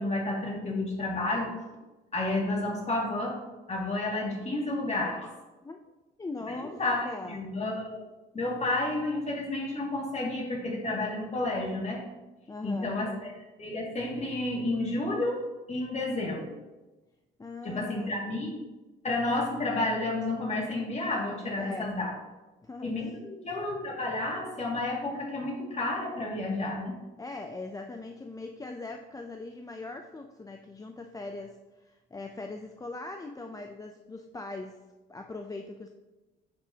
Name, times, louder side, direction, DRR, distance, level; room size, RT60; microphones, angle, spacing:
voice 1, 0.0-1.5 2.1-3.4 3.7-5.3 6.5-8.0 8.3-12.0 12.6-13.3 13.6-15.4 15.7-16.5 17.6-18.5 19.0-22.1 22.8-27.0, left 2 dB, 35° left, -2 dB, 2.2 m, -31 dB
voice 2, 6.2-7.4 12.5-12.9 17.4-18.2 21.5-21.9 22.6-22.9 27.2-34.8 35.1-35.9, left 2 dB, 15° left, 4 dB, 0.5 m, -40 dB
9.7 x 5.9 x 2.8 m, 1.1 s
cardioid pair, 90°, 20 cm